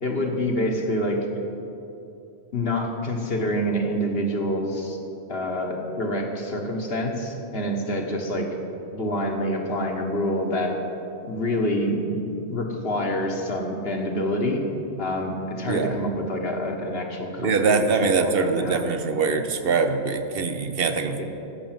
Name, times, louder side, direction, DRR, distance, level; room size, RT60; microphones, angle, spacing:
voice 1, 0.0-1.3 2.5-5.0 5.3-8.5 8.9-10.8 11.2-12.2 12.5-14.6 15.0-18.8 21.2-21.3, equal, 55° left, 2 dB, 1.6 m, -27 dB
voice 2, 15.7-16.0 17.4-21.2, right 4 dB, 55° right, 8 dB, 1.0 m, -23 dB
15.0 x 6.9 x 7.5 m, 2.8 s
omnidirectional pair, 1.2 m